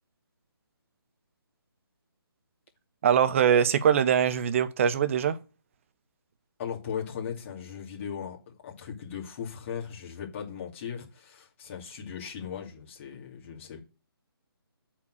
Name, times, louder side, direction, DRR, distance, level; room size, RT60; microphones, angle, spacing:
voice 1, 3.0-5.4, right 8 dB, 30° right, 0.7 m, -22 dB
voice 2, 6.6-13.8, left 7 dB, 30° left, 2.8 m, -38 dB
8.2 x 4.5 x 6.3 m
figure-of-eight pair, 155°, 13 cm